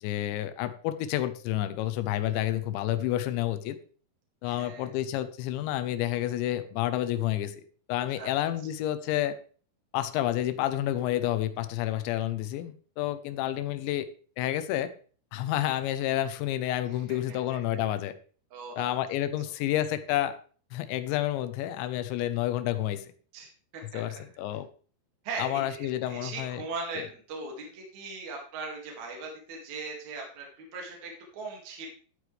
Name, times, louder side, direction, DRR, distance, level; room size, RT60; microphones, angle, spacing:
voice 1, 0.0-3.8 4.4-7.6 7.9-9.4 9.9-14.1 14.4-14.9 15.3-18.2 18.8-20.4 20.7-23.0 23.9-24.7 25.4-26.6 27.0-27.1, left 13 dB, 80° left, 12 dB, 2.9 m, -29 dB
voice 2, 4.4-4.9 8.2-8.3 17.3-17.4 18.5-18.9 23.3-24.2 25.2-31.9, right 3 dB, 50° right, 0 dB, 2.8 m, -39 dB
12.5 x 8.3 x 3.3 m, 0.41 s
omnidirectional pair, 5.4 m